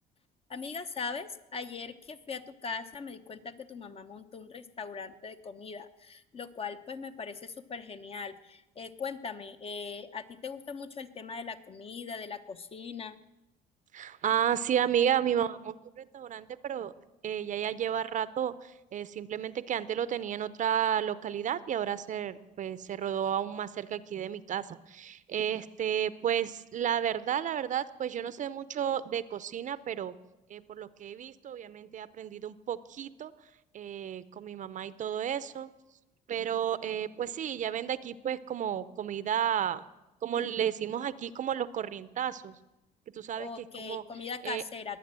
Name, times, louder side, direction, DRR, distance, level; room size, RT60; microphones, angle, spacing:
voice 1, 0.5-13.2 43.4-45.0, left 5 dB, 35° left, 10 dB, 1.0 m, -40 dB
voice 2, 13.9-16.9 17.2-30.1 30.5-33.3 33.7-35.7 36.3-39.8 40.2-42.5 43.1-44.0 44.4-44.6, right 9 dB, 50° right, 16 dB, 0.6 m, -32 dB
21.5 x 8.7 x 7.5 m, 0.97 s
cardioid pair, 110°, 17 cm